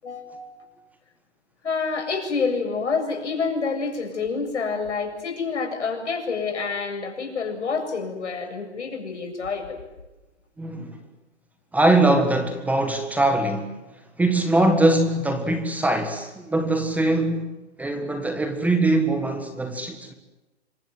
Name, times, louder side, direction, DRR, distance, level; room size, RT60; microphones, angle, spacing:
voice 1, 0.0-0.7 1.6-9.8, left 4 dB, 80° left, 7.6 m, -28 dB
voice 2, 10.6-11.0 11.7-13.8 14.2-17.5 17.8-20.1, right 2 dB, 5° right, 1.7 m, -22 dB
27.0 x 24.0 x 7.8 m
hypercardioid pair, 145°, 35 cm